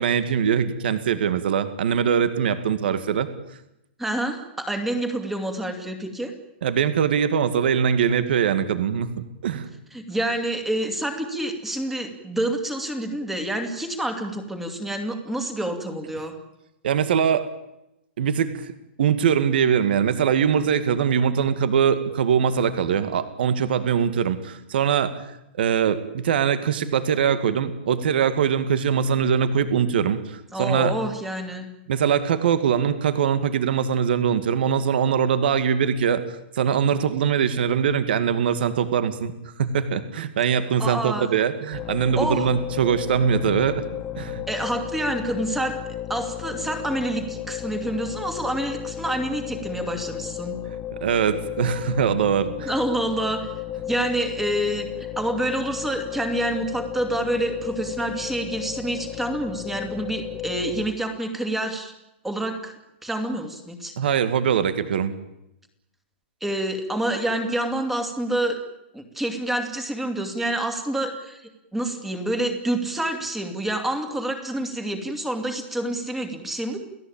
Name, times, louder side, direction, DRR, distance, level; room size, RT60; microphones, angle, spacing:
voice 1, 0.0-3.3 6.6-9.1 9.4-9.7 16.8-17.5 18.2-18.7 19.0-30.9 31.9-36.2 36.5-39.3 39.6-43.8 44.2-44.4 51.0-52.7 64.0-65.1, right 7 dB, 60° right, 12 dB, 2.1 m, -22 dB
voice 2, 4.0-6.3 9.9-16.4 30.5-31.7 40.8-41.3 42.2-42.5 44.5-45.8 46.1-50.6 52.7-53.4 53.8-54.9 55.2-61.9 62.2-62.7 63.0-63.9 66.4-68.6 68.9-76.8, right 1 dB, 5° right, 6 dB, 2.5 m, -27 dB
sound 1, 41.7-60.9, left 12 dB, 20° left, 1.1 m, -34 dB
29.0 x 17.5 x 8.9 m, 0.87 s
hypercardioid pair, 175°, 6 cm